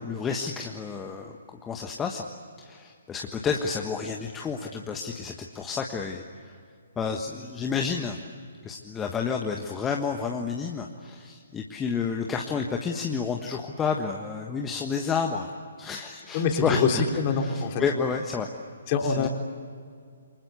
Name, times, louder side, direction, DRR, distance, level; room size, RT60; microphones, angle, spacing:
voice 1, 0.0-1.3 1.6-2.3 2.6-6.5 7.0-8.2 8.6-15.5 15.8-16.8 17.3-18.5 19.1-19.3, left 5 dB, 10° left, 2 dB, 1.4 m, -30 dB
voice 2, 16.3-17.8 18.9-19.3, left 5 dB, 30° left, 3 dB, 3.4 m, -25 dB
28.5 x 25.5 x 8.3 m, 2.1 s
figure-of-eight pair, 130°, 0 cm